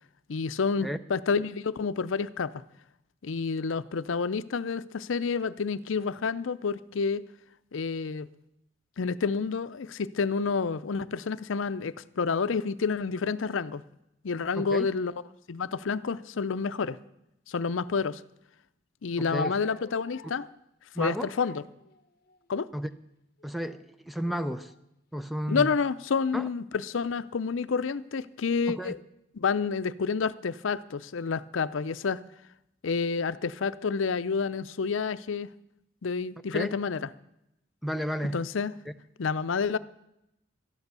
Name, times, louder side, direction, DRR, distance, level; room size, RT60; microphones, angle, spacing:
voice 1, 0.3-2.5 3.2-7.2 7.7-8.3 9.0-13.8 14.2-15.1 15.5-17.0 17.5-18.2 19.0-20.5 21.0-21.6 22.5-22.7 25.5-29.0 29.3-32.2 32.8-35.5 36.0-37.1 38.3-38.7 39.2-39.8, left 5 dB, 80° left, 16 dB, 0.5 m, -29 dB
voice 2, 14.6-14.9 19.2-19.5 20.9-21.3 22.7-22.9 23.4-24.7 25.1-25.7 26.3-26.5 28.7-28.9 36.5-36.8 37.8-38.4, equal, ahead, 11 dB, 0.5 m, -32 dB
sound 1, 19.3-20.6 21.4-22.6 23.4-23.9 24.2-24.8 25.5-26.5, left 2 dB, 50° left, 0.9 m, -44 dB
13.0 x 10.5 x 6.8 m, 0.82 s
head